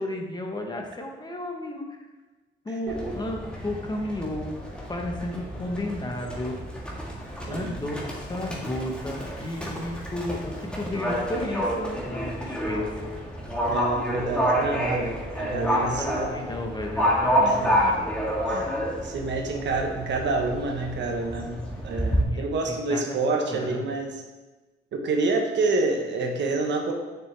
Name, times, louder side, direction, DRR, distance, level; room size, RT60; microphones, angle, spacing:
voice 1, 0.0-2.0 2.6-4.5 4.9-6.6 7.4-13.1 14.7-18.1 22.3-24.0, left 1 dB, 20° left, 2 dB, 1.1 m, -33 dB
Livestock farm animals working animals, 2.9-22.2, equal, 5° left, 1.6 m, -29 dB
voice 2, 13.6-16.3 17.4-17.7 18.5-18.7 19.0-24.2 24.9-26.9, right 3 dB, 65° right, 2 dB, 1.2 m, -28 dB
6.7 x 6.6 x 3.4 m, 1.2 s
cardioid pair, 90°, 20 cm